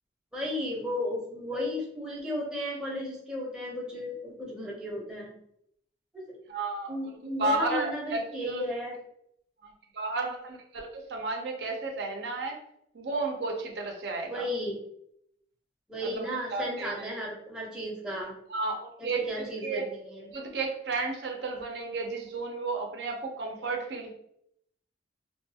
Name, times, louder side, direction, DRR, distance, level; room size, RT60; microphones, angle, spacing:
voice 1, 0.3-5.3 6.1-6.2 6.9-9.0 14.3-14.8 15.9-18.3 19.0-20.3, left 1 dB, 5° right, -4 dB, 0.6 m, -34 dB
voice 2, 6.5-6.9 7.4-8.7 9.6-12.6 12.9-14.4 16.0-17.1 18.5-19.9 20.3-24.1, right 3 dB, 70° right, 2 dB, 0.5 m, -33 dB
2.7 x 2.3 x 2.7 m, 0.73 s
head